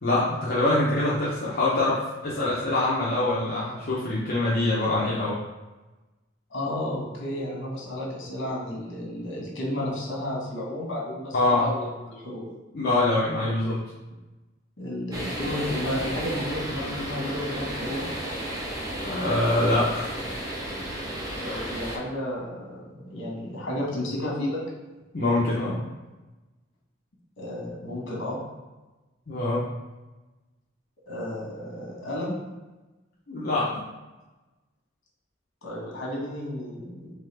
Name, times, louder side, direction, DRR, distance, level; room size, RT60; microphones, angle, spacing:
voice 1, 0.0-5.4 11.3-11.6 12.7-13.8 19.0-20.1 21.5-21.7 25.1-25.8 29.3-29.6 33.3-33.7, left 2 dB, 55° left, -8 dB, 0.7 m, -24 dB
voice 2, 6.5-12.4 14.8-18.1 21.4-22.8 23.0-24.6 27.4-28.4 31.1-32.4 35.6-37.1, left 1 dB, 70° left, -3 dB, 1.3 m, -32 dB
sound 1, 15.1-22.0, right 1 dB, 20° right, 0.7 m, -33 dB
3.6 x 3.2 x 3.4 m, 1.1 s
head